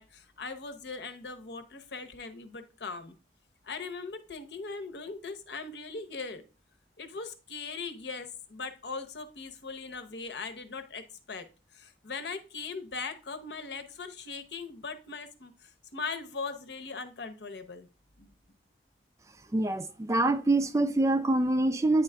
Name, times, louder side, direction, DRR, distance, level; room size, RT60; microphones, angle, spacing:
voice 1, 0.0-3.1 3.6-6.4 7.0-11.5 11.7-17.9 18.2-18.3, left 4 dB, 75° left, 0.8 m, -40 dB
voice 2, 19.5-22.0, right 2 dB, 15° right, 0.3 m, -25 dB
9.3 x 3.7 x 3.3 m
head